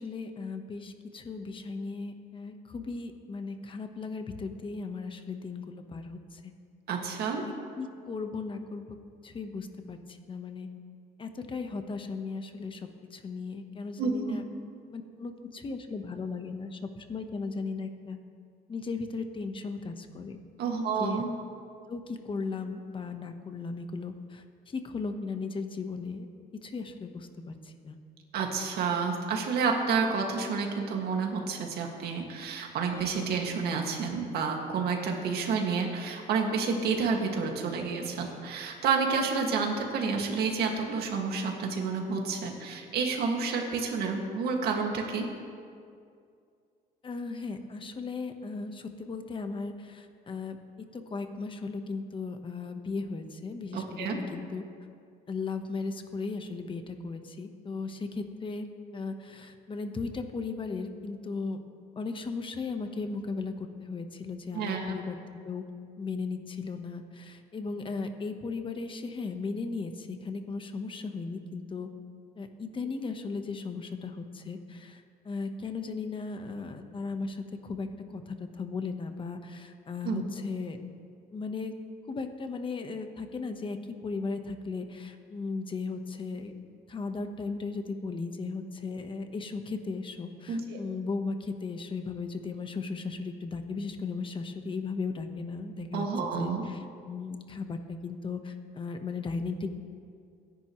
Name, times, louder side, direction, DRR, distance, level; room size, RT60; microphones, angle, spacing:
voice 1, 0.0-6.4 7.4-9.0 9.2-10.7 11.2-14.4 14.9-16.8 17.1-18.2 18.7-20.4 21.0-21.2 21.9-26.3 26.6-28.0 47.0-50.6 50.9-54.6 55.3-58.7 58.9-61.6 62.0-65.2 65.4-65.6 66.0-71.9 72.4-80.8 81.3-81.7 82.1-83.8 84.0-86.5 86.9-96.1 96.4-99.7, left 4 dB, 30° left, 7 dB, 1.2 m, -36 dB
voice 2, 6.9-7.4 14.0-14.4 20.6-21.3 28.3-45.2 53.7-54.2 64.5-64.9 80.0-80.2 90.5-90.8 95.9-96.6, right 5 dB, 70° right, 1 dB, 2.1 m, -29 dB
23.5 x 10.5 x 3.2 m, 2.3 s
cardioid pair, 110°, 17 cm